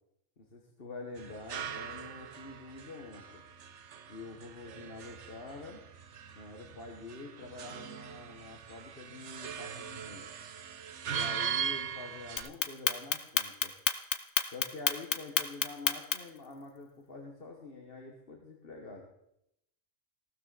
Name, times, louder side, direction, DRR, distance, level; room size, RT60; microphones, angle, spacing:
voice 1, 0.4-3.4 4.1-5.8 6.3-10.3 11.0-13.7 14.5-19.1, left 3 dB, 50° left, 1 dB, 1.7 m, -46 dB
sound 1, 1.2-12.5, right 8 dB, 70° right, 1.1 m, -40 dB
Clock, 12.4-16.4, left 7 dB, 65° left, 1.2 m, -29 dB
17.0 x 12.5 x 4.2 m, 0.80 s
omnidirectional pair, 1.3 m